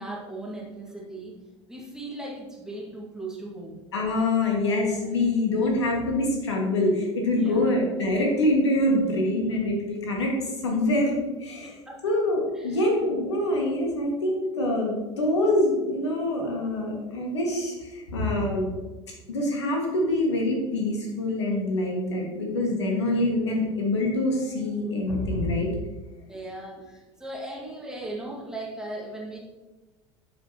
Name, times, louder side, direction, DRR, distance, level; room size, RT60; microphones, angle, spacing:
voice 1, 0.0-1.4 1.7-3.8 7.2-7.8 11.6-12.0 12.5-12.9 26.3-29.4, right 1 dB, 5° right, -3 dB, 2.0 m, -38 dB
voice 2, 3.9-10.3 10.6-11.8 12.0-18.7 19.3-25.7, left 1 dB, 70° left, 0 dB, 1.8 m, -25 dB
12.0 x 5.5 x 2.9 m, 1.2 s
figure-of-eight pair, 75°, 15 cm